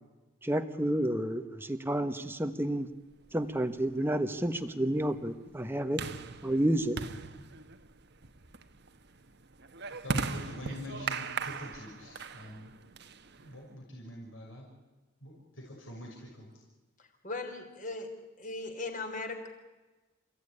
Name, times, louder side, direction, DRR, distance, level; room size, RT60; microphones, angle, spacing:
voice 1, 0.4-2.9 3.3-6.0 6.4-7.0, right 1 dB, 10° right, 8 dB, 1.2 m, -30 dB
sound 1, 3.3-13.7, right 4 dB, 50° right, 1.3 m, -39 dB
voice 2, 10.0-12.7 13.4-14.7 15.2-16.5, left 1 dB, 70° left, -2 dB, 6.4 m, -45 dB
voice 3, 17.0-18.1 18.4-19.5, left 3 dB, 40° left, 5 dB, 4.0 m, -38 dB
29.5 x 16.0 x 9.9 m, 1.2 s
head